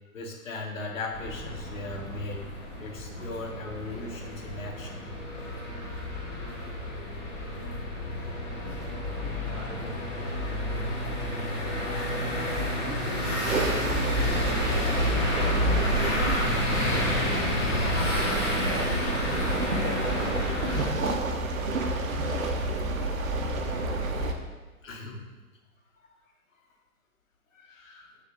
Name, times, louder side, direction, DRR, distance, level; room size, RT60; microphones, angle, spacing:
voice 1, 0.1-2.5 2.8-5.1 12.9-13.0 18.4-19.3 19.9-20.0 24.8-25.2 27.5-28.2, left 2 dB, 60° left, 0 dB, 0.9 m, -39 dB
sound 1, 1.1-20.9, left 1 dB, 25° left, 1.0 m, -30 dB
voice 2, 8.0-9.1 9.4-12.3 12.7-13.5 14.1-18.0, right 1 dB, ahead, -12 dB, 0.6 m, -46 dB
sound 2, 13.5-24.3, right 2 dB, 65° right, 0.6 m, -29 dB
6.1 x 2.5 x 2.4 m, 1.2 s
figure-of-eight pair, 125°, 44 cm